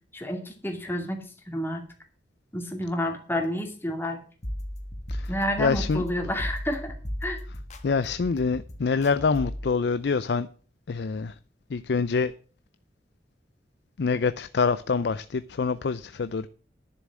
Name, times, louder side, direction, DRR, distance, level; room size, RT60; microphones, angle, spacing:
voice 1, 0.1-1.2 1.5-1.8 2.5-4.2 5.3-6.9 7.2-7.4, left 1 dB, 15° left, 3 dB, 2.4 m, -29 dB
sound 1, 4.4-9.7, equal, 40° left, 1.8 m, -35 dB
voice 2, 5.6-6.0 7.8-10.5 10.9-11.3 11.7-12.3 14.0-16.5, left 5 dB, 70° left, 14 dB, 0.5 m, -25 dB
10.5 x 7.1 x 7.4 m, 0.40 s
head